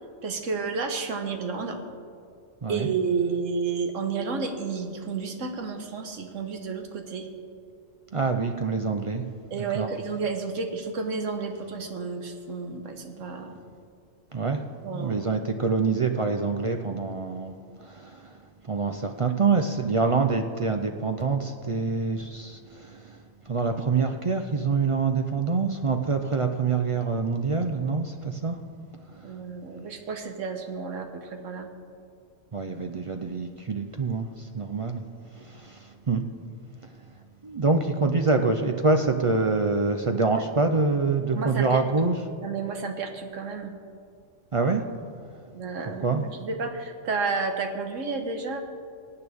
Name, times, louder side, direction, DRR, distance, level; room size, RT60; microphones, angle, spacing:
voice 1, 0.2-1.8 2.7-7.3 9.5-13.6 14.8-15.3 29.2-31.7 40.2-40.4 41.3-41.8 42.4-43.7 45.5-48.6, right 4 dB, 75° right, 5 dB, 1.5 m, -31 dB
voice 2, 2.6-2.9 8.1-9.2 9.8-9.9 14.3-14.6 15.0-17.5 17.9-18.2 18.7-23.1 23.5-28.6 32.5-34.3 34.5-35.0 35.5-35.8 36.1-36.3 37.4-42.2 44.5-44.8 46.0-46.2, right 4 dB, 55° right, 5 dB, 0.3 m, -25 dB
23.0 x 9.0 x 3.5 m, 2.3 s
omnidirectional pair, 1.3 m